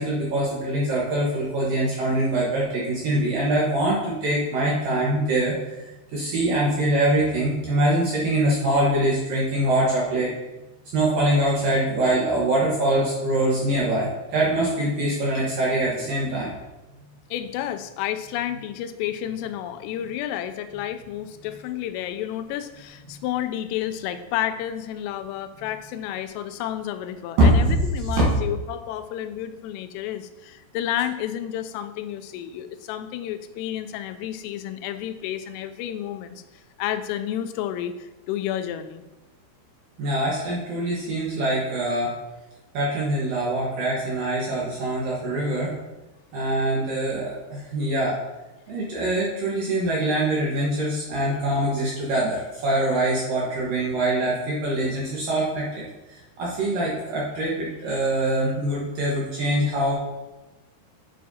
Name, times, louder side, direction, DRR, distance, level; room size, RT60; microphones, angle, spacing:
voice 1, 0.0-5.9 6.1-10.3 10.9-16.5 27.4-27.5 40.0-42.1 42.7-45.7 46.3-48.1 48.7-55.8 56.1-59.9, right 1 dB, 65° right, -6 dB, 2.3 m, -24 dB
voice 2, 17.3-39.0, left 11 dB, 90° left, 10 dB, 3.2 m, -31 dB
9.3 x 8.4 x 2.8 m, 1.1 s
omnidirectional pair, 5.7 m